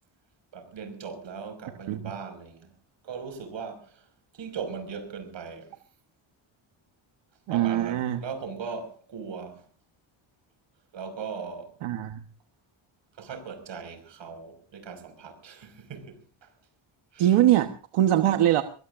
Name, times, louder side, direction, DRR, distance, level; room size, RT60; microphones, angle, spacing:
voice 1, 0.5-2.7 3.0-4.0 4.3-5.7 7.5-9.6 10.9-11.7 13.2-16.5 17.1-17.3, right 5 dB, 60° right, 5.7 m, -39 dB
voice 2, 7.5-8.2 11.8-12.3 17.2-18.6, right 12 dB, 90° right, 1.3 m, -22 dB
22.0 x 22.0 x 2.5 m
cardioid pair, 130°, 49 cm